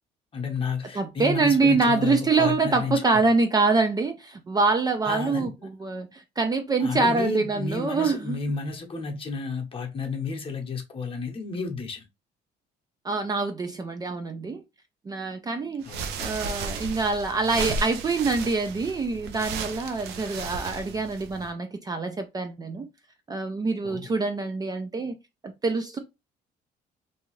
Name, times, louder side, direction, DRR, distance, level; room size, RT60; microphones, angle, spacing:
voice 1, 0.3-3.3 5.0-5.7 6.8-12.0 15.8-16.2 23.8-24.1, left 4 dB, 30° left, 0.9 m, -32 dB
voice 2, 0.9-8.4 13.0-14.6 15.1-15.9 16.2-22.9 23.3-25.1 25.4-26.0, right 3 dB, 25° right, 0.4 m, -25 dB
sound 1, 15.8-21.5, right 4 dB, 80° right, 0.5 m, -34 dB
2.7 x 2.3 x 3.0 m
cardioid pair, 110°, 17 cm